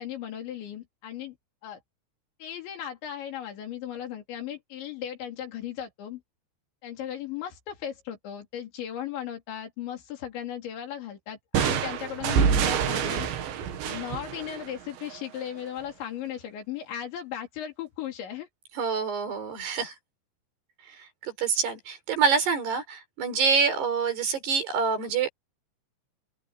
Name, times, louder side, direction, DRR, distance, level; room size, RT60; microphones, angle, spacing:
voice 1, 0.0-1.4 1.6-1.8 2.4-6.2 6.8-13.3 13.8-18.5, left 10 dB, 85° left, 5.5 m, -36 dB
sound 1, 11.5-15.2, right 7 dB, 85° right, 4.5 m, -27 dB
voice 2, 18.8-19.9 20.9-21.0 21.2-25.3, right 5 dB, 65° right, 6.6 m, -26 dB
open air
omnidirectional pair, 5.1 m